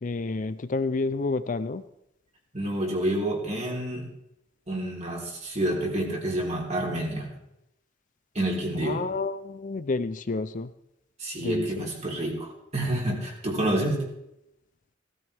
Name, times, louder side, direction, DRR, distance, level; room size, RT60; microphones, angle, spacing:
voice 1, 0.0-1.8 8.8-10.7 11.4-11.9, left 3 dB, 40° left, 12 dB, 0.5 m, -30 dB
voice 2, 2.5-4.1 4.7-7.3 8.4-9.0 11.2-14.1, right 1 dB, 35° right, -2 dB, 3.6 m, -28 dB
16.5 x 15.5 x 3.5 m, 0.85 s
head